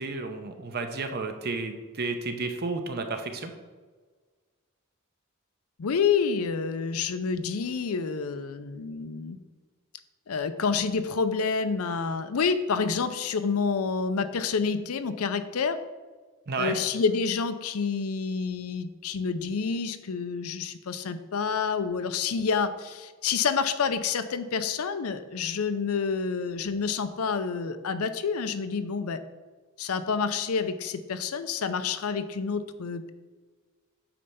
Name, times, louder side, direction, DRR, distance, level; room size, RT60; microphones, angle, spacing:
voice 1, 0.0-3.5 16.5-16.8, right 3 dB, 50° right, 6 dB, 0.8 m, -32 dB
voice 2, 5.8-9.4 10.3-15.8 16.6-29.2 29.8-33.1, left 5 dB, 85° left, 11 dB, 0.5 m, -28 dB
8.7 x 3.3 x 5.5 m, 1.4 s
head